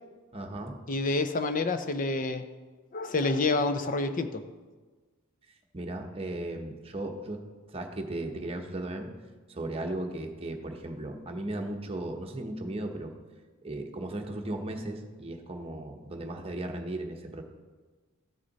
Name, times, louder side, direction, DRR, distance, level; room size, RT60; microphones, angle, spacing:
voice 1, 0.3-0.8 5.7-7.4 7.7-9.1 9.5-13.1 13.6-17.4, right 1 dB, 30° right, 3 dB, 0.9 m, -36 dB
voice 2, 0.9-2.4 2.9-4.4, left 3 dB, 40° left, 9 dB, 0.6 m, -28 dB
14.0 x 6.6 x 4.1 m, 1.4 s
head